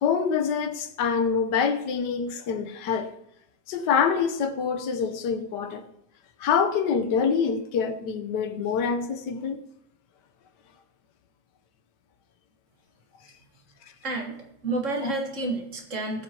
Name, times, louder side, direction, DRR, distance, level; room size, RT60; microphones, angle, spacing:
voice 1, 0.0-3.1 3.7-5.8 6.4-9.6 15.0-15.1, left 6 dB, 85° left, 1.5 m, -25 dB
voice 2, 14.0-16.2, right 2 dB, 50° right, 1.7 m, -30 dB
19.5 x 7.4 x 2.9 m
omnidirectional pair, 1.8 m